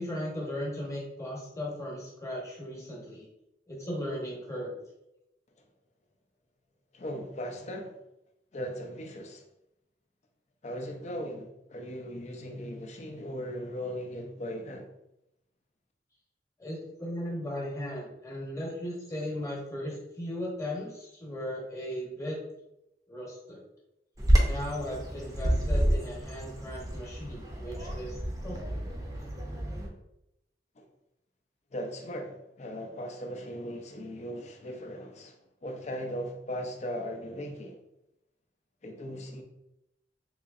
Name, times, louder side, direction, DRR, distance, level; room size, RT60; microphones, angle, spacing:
voice 1, 0.0-3.3 3.7-4.7 16.6-22.4 23.1-23.6 24.4-28.1 28.4-28.9, equal, 20° left, 1.0 m, -37 dB
voice 2, 6.9-8.0 8.5-9.4 10.6-14.9 30.8-30.9 31.7-35.4 35.6-37.8 38.8-39.4, equal, 40° left, 0.5 m, -38 dB
Bird vocalization bird call bird song, 24.2-29.9, equal, 20° right, 0.6 m, -29 dB
3.8 x 3.0 x 2.4 m
head